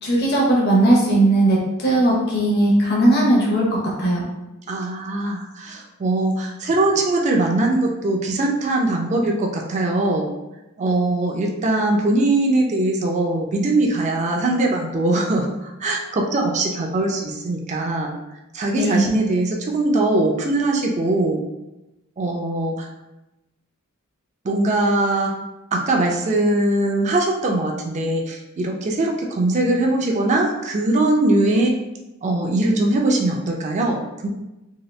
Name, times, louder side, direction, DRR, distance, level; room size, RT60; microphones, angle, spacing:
voice 1, 0.0-4.2 18.8-19.1, right 1 dB, 50° left, -3 dB, 0.8 m, -18 dB
voice 2, 4.7-10.3 10.8-18.1 18.5-21.5 22.2-22.9 24.4-25.3 25.7-31.7 32.2-34.3, right 2 dB, 35° right, 0 dB, 0.4 m, -21 dB
2.8 x 2.7 x 3.1 m, 0.97 s
head